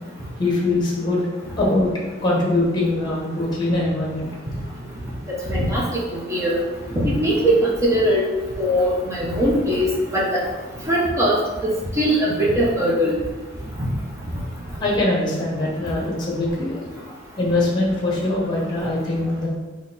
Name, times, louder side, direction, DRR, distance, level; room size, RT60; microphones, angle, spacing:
voice 1, 0.4-1.3 1.6-1.9 2.2-4.3 14.8-16.8 17.4-19.5, left 2 dB, 25° left, -3 dB, 1.0 m, -22 dB
voice 2, 5.5-5.8 6.3-6.6 7.0-8.2 8.6-9.9 10.1-10.4 10.9-11.4 12.0-13.1 13.8-13.9, equal, 15° right, -5 dB, 0.7 m, -20 dB
4.0 x 2.9 x 4.1 m, 1.2 s
head